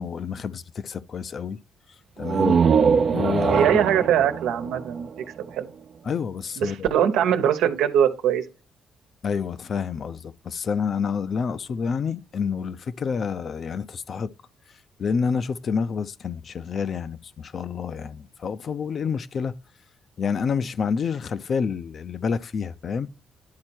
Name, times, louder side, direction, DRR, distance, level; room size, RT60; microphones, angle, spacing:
voice 1, 0.0-1.6 2.2-2.6 3.1-3.8 6.0-6.9 9.2-14.3 15.0-19.5 20.2-23.1, left 6 dB, 50° left, 0.6 m, -28 dB
sound 1, 2.2-5.8, right 6 dB, 50° right, 0.6 m, -22 dB
voice 2, 3.5-5.1 5.5-5.7 6.6-8.4, right 9 dB, 90° right, 1.1 m, -22 dB
10.5 x 4.3 x 4.5 m
cardioid pair, 90°, 0 cm